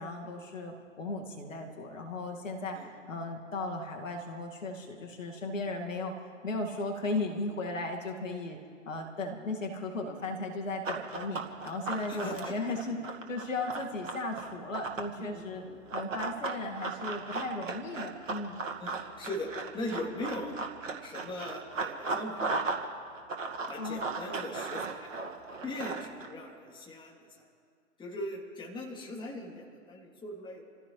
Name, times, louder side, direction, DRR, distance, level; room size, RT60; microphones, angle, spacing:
voice 1, 0.0-6.2 6.4-8.6 8.9-13.0 13.3-15.6 15.9-18.6 23.8-24.0, left 2 dB, 70° left, 2 dB, 2.2 m, -36 dB
Run, 10.8-15.1 15.9-22.9 23.1-26.3, right 4 dB, 70° right, 2.1 m, -36 dB
voice 2, 12.1-12.5 15.2-15.8 18.8-20.5 21.0-22.4 23.7-25.1 25.6-27.5 28.0-30.6, left 1 dB, 10° left, -2 dB, 3.0 m, -40 dB
28.5 x 15.5 x 3.3 m, 2.2 s
figure-of-eight pair, 115°, 40 cm